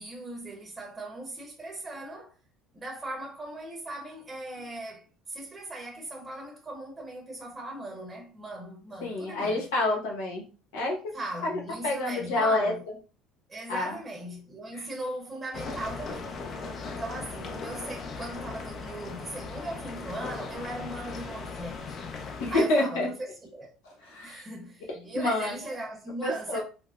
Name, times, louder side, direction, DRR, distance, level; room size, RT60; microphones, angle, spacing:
voice 1, 0.0-2.3 2.7-9.6 11.1-12.8 13.5-16.3 16.8-22.0 22.5-23.7 24.2-26.6, right 1 dB, 20° right, 0.8 m, -39 dB
voice 2, 9.0-10.4 10.7-11.1 11.4-12.7 13.7-14.0 14.7-14.8 22.4-23.1 24.0-24.4 24.9-25.5 26.2-26.6, left 2 dB, 90° left, 1.0 m, -28 dB
sound 1, 15.5-22.6, left 4 dB, 45° left, 0.5 m, -38 dB
4.0 x 2.1 x 2.4 m
supercardioid pair, 110°, 0 cm